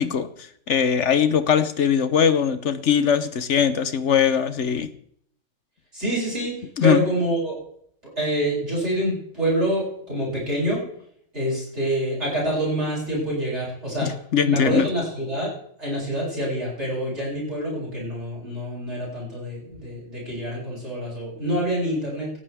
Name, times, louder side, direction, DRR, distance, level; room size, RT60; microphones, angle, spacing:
voice 1, 0.0-4.9 6.8-7.0 14.0-14.9, left 8 dB, 55° left, 12 dB, 0.8 m, -21 dB
voice 2, 5.9-7.5 8.2-10.8 11.3-14.1 14.4-15.5 15.8-22.3, right 1 dB, 30° right, -6 dB, 8.0 m, -26 dB
18.0 x 15.5 x 3.5 m, 0.66 s
omnidirectional pair, 2.3 m